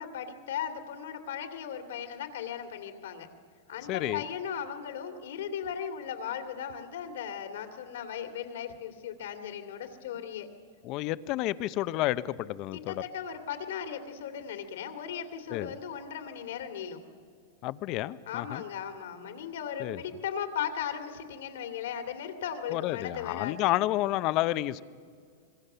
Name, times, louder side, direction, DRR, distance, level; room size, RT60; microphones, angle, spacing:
voice 1, 0.0-3.3 3.7-10.5 12.7-17.0 18.3-23.6, left 8 dB, 80° left, 7 dB, 2.6 m, -37 dB
voice 2, 3.9-4.2 10.8-13.0 15.5-15.7 17.6-18.6 19.8-20.0 22.7-24.8, left 16 dB, 40° left, 16 dB, 0.7 m, -30 dB
26.0 x 21.5 x 6.9 m, 2.2 s
supercardioid pair, 140°, 0 cm